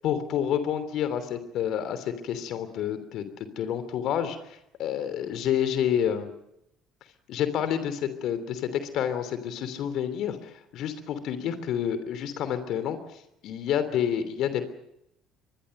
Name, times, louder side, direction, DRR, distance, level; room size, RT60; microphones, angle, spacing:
voice 1, 0.0-3.3 3.6-4.4 4.8-6.3 7.3-13.0 13.4-14.7, left 9 dB, 60° left, 11 dB, 3.1 m, -28 dB
24.0 x 22.0 x 6.6 m, 0.81 s
hypercardioid pair, 60°, 0 cm